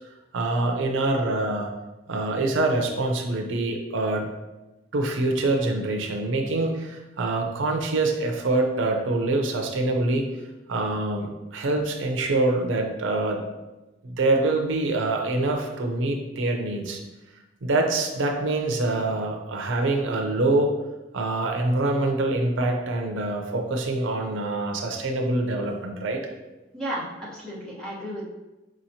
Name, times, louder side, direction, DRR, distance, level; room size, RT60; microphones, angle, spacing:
voice 1, 0.3-1.7 2.1-4.3 4.9-10.2 10.7-13.4 14.0-17.0 17.6-20.7 21.1-26.2, right 2 dB, 90° right, 3 dB, 0.5 m, -25 dB
voice 2, 26.7-28.2, right 1 dB, 5° left, -8 dB, 1.1 m, -33 dB
4.8 x 2.9 x 2.7 m, 1.1 s
head